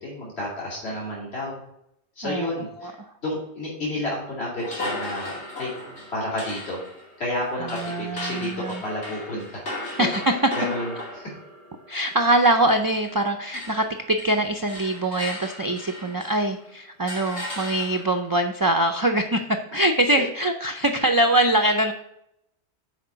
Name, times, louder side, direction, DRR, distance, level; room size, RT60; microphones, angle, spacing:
voice 1, 0.0-1.6 2.2-3.0 3.2-5.7 6.1-6.8 7.2-9.7 10.5-11.3 13.4-13.5, left 1 dB, 70° left, -5 dB, 2.6 m, -31 dB
sound 1, 4.6-13.2 13.5-16.5 17.1-18.3, left 1 dB, 85° left, 2.8 m, -36 dB
voice 2, 7.6-8.8 10.0-10.3 11.9-21.9, right 1 dB, 30° right, 6 dB, 0.3 m, -23 dB
6.4 x 4.8 x 6.7 m, 0.80 s
omnidirectional pair, 1.1 m